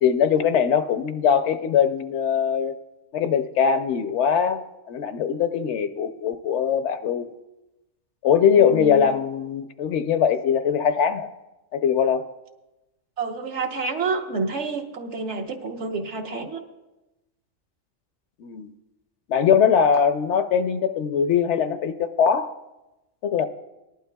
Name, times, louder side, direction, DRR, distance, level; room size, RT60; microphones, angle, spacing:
voice 1, 0.0-2.8 3.1-7.3 8.2-11.3 11.7-12.2 18.4-18.7 19.3-22.5 23.2-23.5, left 7 dB, 70° left, 10 dB, 0.9 m, -21 dB
voice 2, 8.5-9.1 13.2-16.6, right 3 dB, 65° right, 2 dB, 1.3 m, -29 dB
20.0 x 11.5 x 2.2 m, 1.0 s
omnidirectional pair, 1.3 m